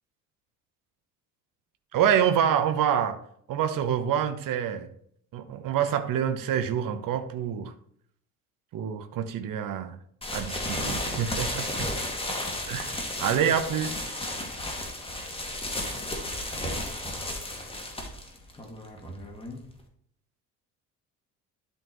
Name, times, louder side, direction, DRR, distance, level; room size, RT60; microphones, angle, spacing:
voice 1, 1.9-3.2 3.5-4.9 5.3-7.7 8.7-10.0 10.3-11.9 12.7-14.2, right 9 dB, 45° right, 9 dB, 1.1 m, -27 dB
sound 1, 10.2-19.8, left 1 dB, 10° left, 2.1 m, -33 dB
12.5 x 4.5 x 3.1 m, 0.65 s
figure-of-eight pair, 55°, 46 cm